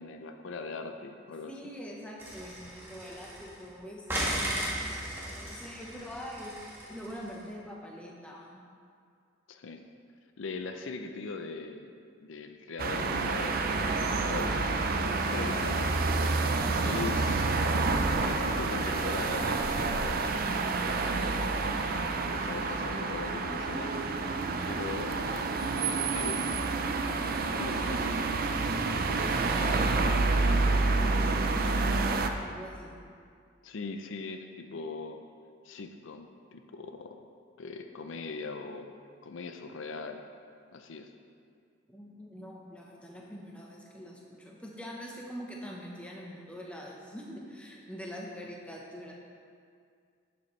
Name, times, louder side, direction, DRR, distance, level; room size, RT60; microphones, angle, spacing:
voice 1, 0.0-1.5 9.5-9.8 10.4-11.9 12.2-14.9 15.3-16.2 16.8-17.5 18.2-20.7 21.4-21.9 22.3-24.3 24.7-25.4 26.0-26.4 27.5-28.3 33.6-35.2 35.6-37.2 37.6-38.9 39.2-40.2 40.7-41.1, left 4 dB, 70° left, 6 dB, 0.5 m, -40 dB
voice 2, 1.5-4.4 5.2-6.6 6.9-8.6 16.6-17.2 29.1-30.0 30.7-33.0 41.9-49.1, equal, 5° left, -2 dB, 0.9 m, -44 dB
sound 1, 2.2-3.7 4.1-7.3, right 1 dB, 10° right, 1.5 m, -36 dB
sound 2, 12.8-32.3, right 3 dB, 45° right, 0.5 m, -28 dB
11.5 x 7.0 x 3.2 m, 2.3 s
head